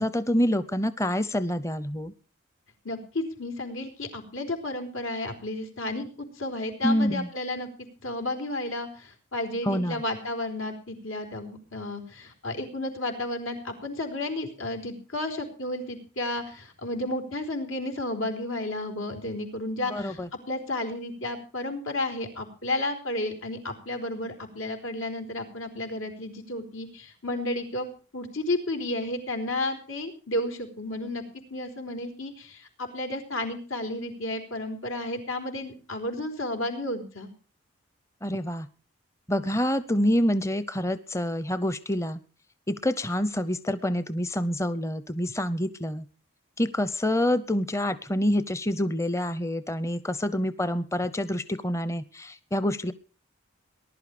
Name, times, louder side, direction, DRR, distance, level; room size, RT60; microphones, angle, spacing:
voice 1, 0.0-2.1 6.8-7.3 9.6-10.0 19.9-20.3 38.2-38.7 39.3-42.2 42.7-46.1 46.6-52.9, left 1 dB, 15° left, 14 dB, 0.6 m, -27 dB
voice 2, 2.8-7.7 8.0-20.2 20.5-27.9 28.1-31.2 31.5-37.3, left 1 dB, 90° left, 4 dB, 4.3 m, -32 dB
19.5 x 11.5 x 4.9 m, 0.39 s
head